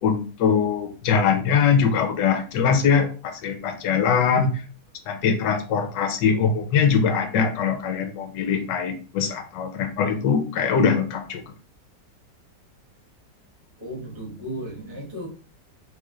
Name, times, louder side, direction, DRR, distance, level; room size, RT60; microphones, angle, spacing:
voice 1, 0.0-4.5 5.1-11.4, left 6 dB, 75° left, 6 dB, 1.3 m, -22 dB
voice 2, 13.8-15.3, equal, 20° right, -5 dB, 1.3 m, -35 dB
3.9 x 3.1 x 2.3 m, 0.37 s
omnidirectional pair, 1.9 m